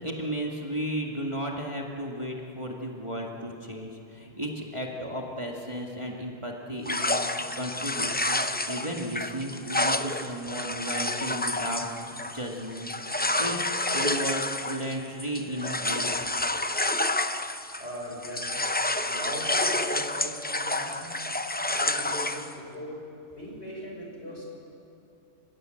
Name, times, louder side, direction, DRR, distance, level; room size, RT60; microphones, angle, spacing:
voice 1, 0.0-8.4 8.7-12.9 13.4-16.1, equal, 25° right, -1 dB, 1.9 m, -34 dB
sound 1, 6.9-18.0 18.2-22.5, left 2 dB, 15° left, 0.4 m, -29 dB
voice 2, 17.8-18.7 19.0-21.1 21.6-23.0 23.3-24.4, equal, 55° left, -2 dB, 6.4 m, -39 dB
30.0 x 16.5 x 7.8 m, 2.8 s
omnidirectional pair, 1.3 m